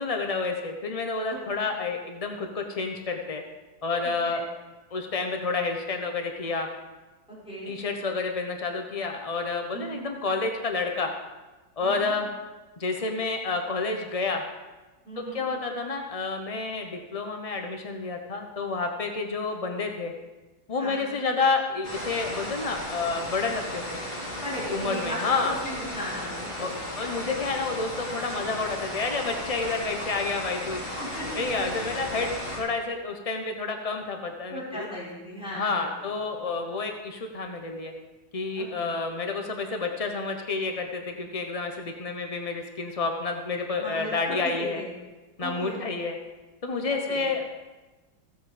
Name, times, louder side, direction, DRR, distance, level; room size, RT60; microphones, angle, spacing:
voice 1, 0.0-3.4 3.8-4.4 4.9-6.7 7.7-11.1 11.8-12.3 12.8-14.4 15.2-20.1 20.7-24.0 24.7-25.5 26.6-30.8 31.3-34.9 35.5-37.9 38.3-44.8 45.4-46.2 46.6-47.4, left 4 dB, 50° left, 3 dB, 0.4 m, -29 dB
voice 2, 4.0-4.4 7.3-7.7 9.7-10.1 11.8-12.1 15.0-15.4 20.8-21.2 24.3-26.7 31.0-32.0 34.5-36.4 38.5-38.9 43.8-44.9 45.4-45.8 46.9-47.2, equal, 5° right, -8 dB, 4.3 m, -37 dB
sound 1, 21.8-32.6, left 1 dB, 30° left, 3.2 m, -35 dB
16.0 x 8.1 x 5.0 m, 1.2 s
omnidirectional pair, 2.1 m